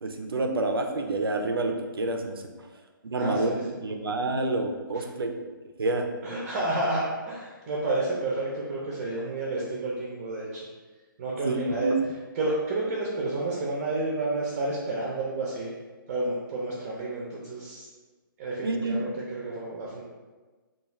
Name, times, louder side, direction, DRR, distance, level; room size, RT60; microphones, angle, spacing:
voice 1, 0.0-2.4 3.0-5.5 5.8-6.1 11.4-11.6 11.8-11.9 18.6-19.0, right 2 dB, 85° right, 4 dB, 0.4 m, -28 dB
voice 2, 3.1-3.6 4.9-5.0 6.2-10.6 11.2-11.9 12.3-15.7 16.1-17.9 18.4-20.0, right 2 dB, 30° right, -4 dB, 0.5 m, -30 dB
2.3 x 2.3 x 3.1 m, 1.3 s
hypercardioid pair, 145°, 12 cm